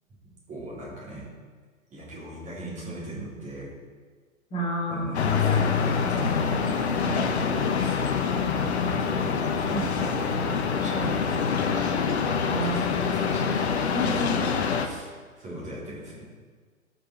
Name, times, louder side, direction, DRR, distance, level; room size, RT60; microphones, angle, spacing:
voice 1, 0.5-1.3 1.9-3.7 4.9-8.2 8.7-11.9 12.6-13.8 14.2-14.3 14.8-16.2, right 1 dB, 15° right, -7 dB, 3.7 m, -38 dB
voice 2, 4.5-5.3 9.7-9.8 10.9-11.1 12.4-13.1 13.9-14.7, equal, 15° left, -5 dB, 2.5 m, -31 dB
sound 1, 5.1-14.9, left 6 dB, 50° left, 1.0 m, -25 dB
17.5 x 6.1 x 4.7 m, 1.5 s
figure-of-eight pair, 120°, 42 cm